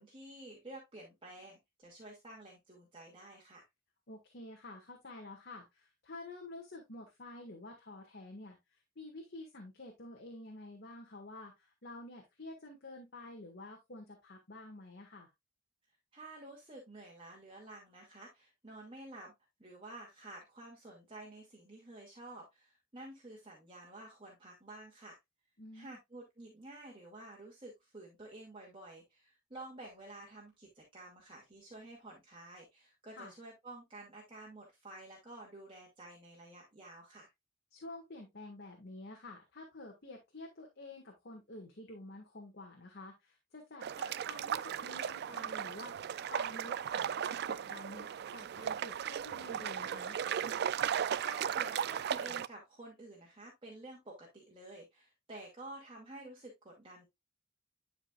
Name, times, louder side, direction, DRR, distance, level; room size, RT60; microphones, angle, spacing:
voice 1, 0.0-3.7 16.1-19.3 19.6-25.2 25.7-37.3 51.2-57.0, right 2 dB, 30° right, -3 dB, 2.3 m, -51 dB
voice 2, 4.1-15.3 25.6-26.0 33.1-33.3 37.7-46.8 47.5-50.2, left 2 dB, 55° left, 1 dB, 1.8 m, -49 dB
sound 1, 43.8-52.5, right 8 dB, 55° right, 0.4 m, -36 dB
11.5 x 5.0 x 2.4 m, 0.19 s
head